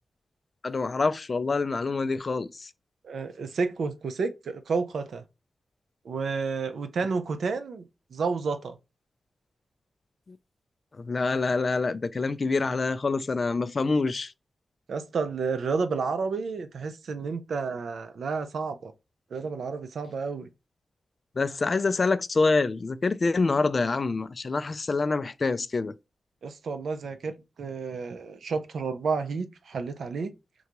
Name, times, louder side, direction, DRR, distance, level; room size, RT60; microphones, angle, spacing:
voice 1, 0.6-2.7 10.3-10.4 11.0-14.3 21.4-25.9, left 3 dB, 40° left, 0.3 m, -26 dB
voice 2, 3.0-5.2 6.0-7.8 8.1-8.8 14.9-18.9 19.3-20.5 26.4-30.3, right 4 dB, 80° right, 0.5 m, -31 dB
3.8 x 2.3 x 2.9 m
wide cardioid pair, 115°, 0 cm